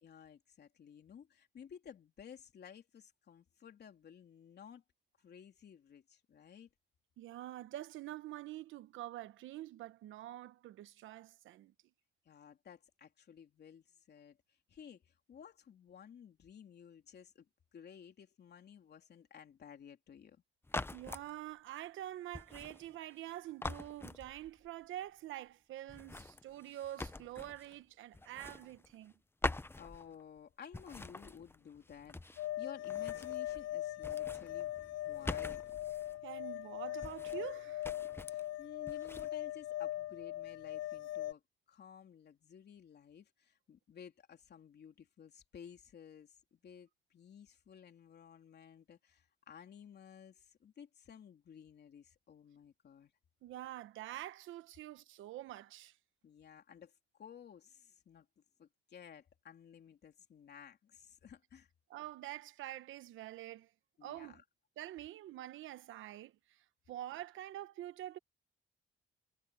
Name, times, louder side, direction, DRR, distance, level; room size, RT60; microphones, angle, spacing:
voice 1, 0.0-4.8 5.2-6.7 12.3-20.4 29.8-34.7 35.1-35.8 38.3-41.4 41.7-53.1 56.2-58.3 58.6-61.7 64.0-64.4, left 8 dB, 55° left, 3.6 m, -55 dB
voice 2, 7.2-11.7 20.9-29.1 36.2-37.9 53.4-55.9 61.9-63.7 64.0-64.4 64.8-68.2, right 14 dB, 85° right, 1.1 m, -46 dB
sound 1, 20.6-21.3 22.3-23.3 23.6-24.7 25.9-27.8 28.1-29.1 29.4-30.4 30.7-32.5 32.8-33.7 34.0-36.2 37.0-37.5 37.8-38.5 38.9-39.3, left 2 dB, 10° left, 0.8 m, -44 dB
sound 2, 32.4-41.3, left 14 dB, 85° left, 0.5 m, -40 dB
cardioid pair, 90°, 20 cm